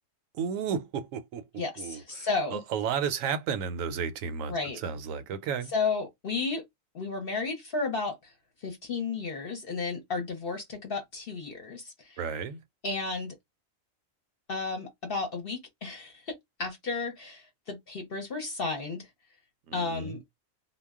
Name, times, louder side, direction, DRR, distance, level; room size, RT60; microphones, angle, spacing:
voice 1, 0.3-5.7 12.2-12.6 19.7-20.2, right 7 dB, 80° right, 1.0 m, -33 dB
voice 2, 1.6-2.6 4.5-4.8 5.7-6.6 6.9-8.3 8.6-12.2 12.8-13.3 14.5-16.3 16.6-19.1 19.7-20.2, left 4 dB, 50° left, 0.8 m, -33 dB
2.3 x 2.1 x 3.4 m
omnidirectional pair, 1.4 m